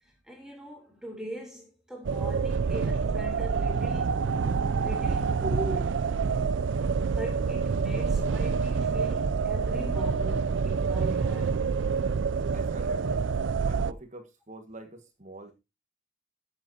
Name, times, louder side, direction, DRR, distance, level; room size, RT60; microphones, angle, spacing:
voice 1, 0.2-4.2 4.8-6.1 7.2-11.6, equal, 5° right, 3.3 m, -40 dB
sound 1, 2.0-13.9, right 5 dB, 75° right, 0.4 m, -27 dB
voice 2, 12.5-13.3 13.6-15.5, right 2 dB, 40° right, 1.7 m, -45 dB
14.5 x 7.9 x 2.8 m
head